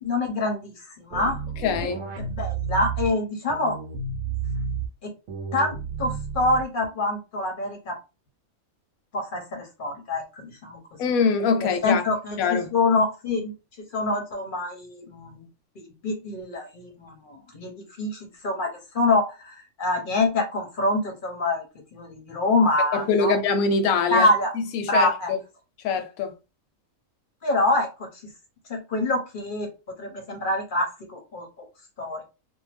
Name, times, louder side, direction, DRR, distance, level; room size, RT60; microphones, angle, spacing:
voice 1, 0.0-1.4 1.8-3.8 5.0-5.1 5.5-7.9 9.1-10.8 11.8-13.5 13.9-15.5 15.8-18.7 18.9-21.6 21.9-23.3 24.1-24.5 24.9-25.3 27.4-27.9 28.7-29.7 30.0-31.5 32.0-32.2, left 2 dB, 50° left, 0.7 m, -25 dB
sound 1, 1.1-3.1 3.5-4.9 5.3-6.9, right 5 dB, 75° right, 1.0 m, -31 dB
voice 2, 1.6-2.0 11.0-12.0 12.4-12.7 22.9-24.3 24.5-25.4 25.8-26.3, left 5 dB, 80° left, 1.0 m, -23 dB
2.6 x 2.1 x 3.2 m
omnidirectional pair, 1.5 m